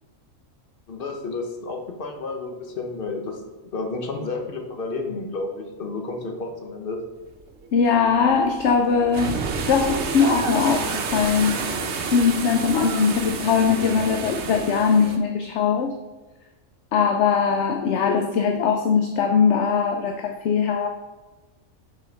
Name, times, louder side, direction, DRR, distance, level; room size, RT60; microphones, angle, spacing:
voice 1, 0.9-3.4 3.7-7.0, left 3 dB, 45° left, 3 dB, 1.1 m, -31 dB
sound 1, 7.5-15.2, right 5 dB, 60° right, 1.0 m, -30 dB
voice 2, 7.7-11.7 12.1-15.9 16.9-20.9, left 6 dB, 65° left, 4 dB, 0.8 m, -21 dB
6.1 x 4.2 x 5.2 m, 1.2 s
omnidirectional pair, 1.4 m